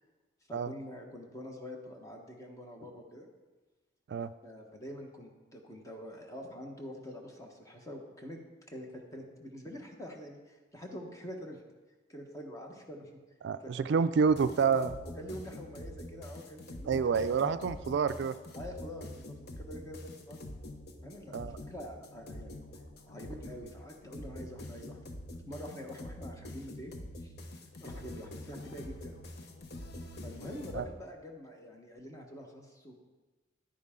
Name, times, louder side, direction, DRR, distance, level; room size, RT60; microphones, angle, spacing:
voice 1, 0.5-3.3 4.4-8.4 8.7-11.6 12.1-13.1 13.6-13.9 15.2-17.2 18.6-20.4 21.0-21.3 21.6-22.6 23.1-25.1 25.5-26.9 27.2-27.3 27.8-29.1 30.2-32.9, equal, 20° left, 2 dB, 1.2 m, -45 dB
voice 2, 13.4-15.0 16.9-18.3 21.3-21.6 30.7-30.8, right 6 dB, 65° right, 13 dB, 0.3 m, -28 dB
sound 1, 14.3-30.9, left 1 dB, 60° left, 0.9 m, -46 dB
10.5 x 9.5 x 3.7 m, 1.2 s
head